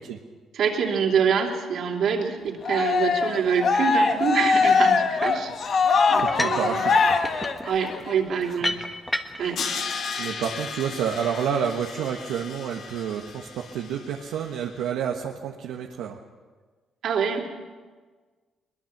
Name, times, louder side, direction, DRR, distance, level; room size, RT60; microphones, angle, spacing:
voice 1, 0.5-5.8 6.1-6.8 7.6-8.8 9.4-9.6 17.0-17.5, right 6 dB, 70° right, 1 dB, 3.3 m, -25 dB
Cheering, 2.6-8.1, left 4 dB, 55° left, 1.7 m, -22 dB
sound 1, 5.2-5.5 6.2-6.7 7.0-9.6, left 1 dB, 10° left, 1.4 m, -31 dB
voice 2, 6.2-7.2 8.6-8.8 10.2-16.2, right 8 dB, 90° right, 1 dB, 1.3 m, -29 dB
Crash cymbal, 9.6-14.6, left 5 dB, 70° left, 2.6 m, -35 dB
22.0 x 21.5 x 6.0 m, 1.4 s
cardioid pair, 90°, 0 cm